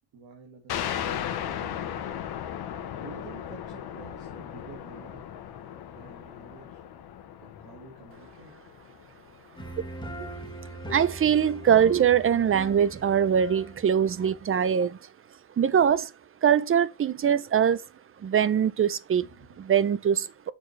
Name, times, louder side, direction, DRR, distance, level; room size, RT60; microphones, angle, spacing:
voice 1, 0.1-2.2 3.0-5.2 5.9-6.8 7.4-8.6 19.3-19.6, right 4 dB, 75° right, 2.1 m, -49 dB
sound 1, 0.7-9.9, left 10 dB, 70° left, 1.2 m, -37 dB
sound 2, 9.6-14.8, right 1 dB, 10° left, 2.1 m, -41 dB
voice 2, 10.9-15.0 15.6-16.1 16.4-17.8 18.2-19.2 19.7-20.3, right 8 dB, 35° right, 0.6 m, -22 dB
7.0 x 4.3 x 3.2 m
cardioid pair, 85°, 39 cm